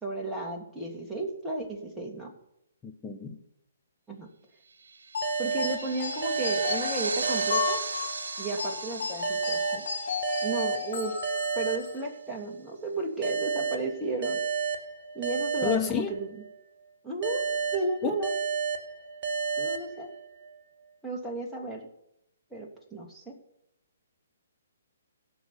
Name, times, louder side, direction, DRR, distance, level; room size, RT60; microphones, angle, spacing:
voice 1, 0.0-2.3 4.1-4.3 5.4-7.8 8.4-9.9 10.4-11.2 11.5-14.4 15.1-16.4 17.0-17.4 17.7-18.3 19.6-20.1 21.0-21.9 22.5-23.3, right 2 dB, 5° right, 2.8 m, -34 dB
voice 2, 2.8-3.4 15.6-16.1 18.0-18.1, left 7 dB, 15° left, 1.4 m, -29 dB
sound 1, 4.8-11.6, right 4 dB, 65° right, 1.4 m, -37 dB
sound 2, 5.1-12.0, left 6 dB, 55° left, 3.5 m, -34 dB
sound 3, 5.2-8.6 9.2-12.5 13.2-16.6 17.2-20.5, right 5 dB, 40° right, 1.9 m, -32 dB
17.0 x 6.2 x 7.2 m
figure-of-eight pair, 130°, 0 cm